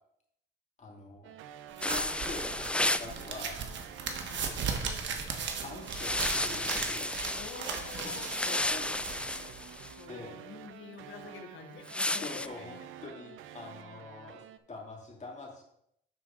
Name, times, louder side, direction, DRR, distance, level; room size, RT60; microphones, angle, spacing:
voice 1, 0.8-1.3 1.8-3.6 4.5-5.1 5.6-7.1 8.0-9.4 10.1-10.4 12.2-15.6, left 3 dB, 35° left, -2 dB, 2.8 m, -45 dB
sound 1, 1.2-14.6, right 10 dB, 85° right, 0.5 m, -49 dB
sound 2, 1.8-3.1 5.9-9.9 11.9-12.5, left 1 dB, 5° left, 0.3 m, -33 dB
sound 3, 1.8-9.9, right 5 dB, 65° right, 1.3 m, -38 dB
voice 2, 4.2-4.6 7.3-8.6 10.0-12.9, left 6 dB, 75° left, 5 dB, 1.2 m, -48 dB
11.5 x 4.5 x 3.8 m, 0.74 s
cardioid pair, 90°, 20 cm